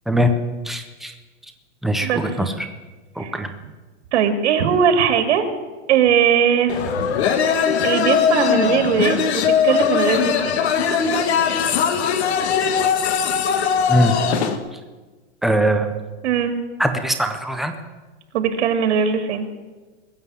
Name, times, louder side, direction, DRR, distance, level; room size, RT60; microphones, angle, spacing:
voice 1, 0.7-1.1 1.8-2.1 2.4-2.5 3.2-3.5 13.9-14.2 15.4-15.9 16.8-17.7, right 1 dB, ahead, 5 dB, 0.4 m, -20 dB
voice 2, 2.0-2.4 3.2-3.4 4.1-5.5 5.9-6.8 7.6-10.6 16.2-16.5 18.3-19.5, right 7 dB, 70° right, 7 dB, 2.0 m, -20 dB
sound 1, 6.7-14.6, left 7 dB, 65° left, 1.6 m, -20 dB
21.5 x 7.4 x 8.2 m, 1.3 s
supercardioid pair, 165°, 36 cm